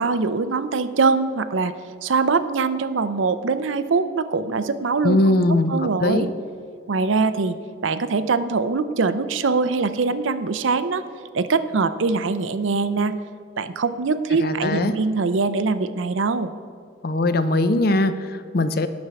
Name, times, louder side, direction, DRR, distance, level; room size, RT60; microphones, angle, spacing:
voice 1, 0.0-1.7 2.0-5.4 5.7-6.3 6.9-7.6 7.8-11.0 11.3-13.1 13.6-16.5, right 4 dB, 85° right, 12 dB, 0.6 m, -22 dB
voice 2, 5.0-6.3 14.4-15.0 17.0-18.9, left 2 dB, 50° left, 11 dB, 0.5 m, -21 dB
9.7 x 6.1 x 7.0 m, 2.1 s
head